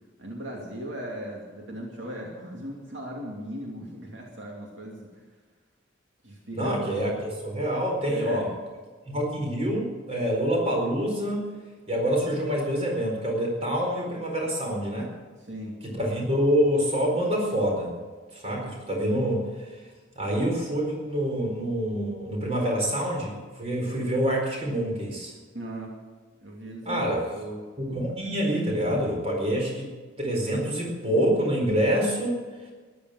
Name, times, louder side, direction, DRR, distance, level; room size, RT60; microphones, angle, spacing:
voice 1, 0.2-5.2 6.2-6.7 8.1-8.5 15.4-15.8 25.5-26.0 26.4-27.6, right 1 dB, 70° right, -2 dB, 2.7 m, -38 dB
voice 2, 6.5-8.5 9.1-11.5 11.9-15.1 15.8-17.9 18.3-19.8 20.1-25.3 26.8-27.3 27.8-32.4, equal, 30° right, 0 dB, 4.4 m, -26 dB
13.5 x 11.0 x 7.6 m, 1.4 s
head